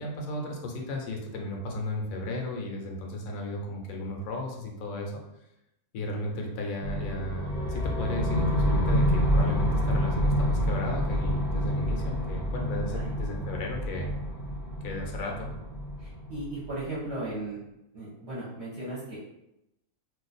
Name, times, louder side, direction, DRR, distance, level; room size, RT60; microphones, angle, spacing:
voice 1, 0.0-5.2 5.9-14.1 14.8-15.5, left 1 dB, 70° left, 1 dB, 1.0 m, -35 dB
sound 1, 6.8-16.9, equal, 25° left, 0.5 m, -28 dB
voice 2, 16.0-17.6 17.9-19.2, right 2 dB, 55° right, -9 dB, 1.0 m, -36 dB
2.6 x 2.3 x 3.9 m, 0.86 s
omnidirectional pair, 1.6 m